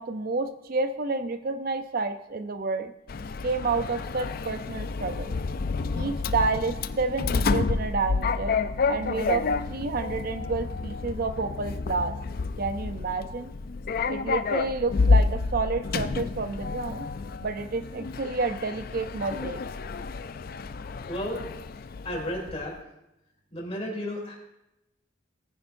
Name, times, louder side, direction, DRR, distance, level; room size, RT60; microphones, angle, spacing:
voice 1, 0.0-2.9 3.4-5.4 5.9-8.6 8.9-12.1 12.6-13.5 14.1-17.1 17.4-19.6, right 3 dB, 50° right, 9 dB, 0.5 m, -29 dB
Sliding door, 3.1-22.7, left 4 dB, 50° left, 0.4 m, -29 dB
voice 2, 21.1-21.4 22.0-22.8 23.5-24.4, equal, 30° left, -2 dB, 3.3 m, -33 dB
19.5 x 9.8 x 2.6 m, 0.87 s
head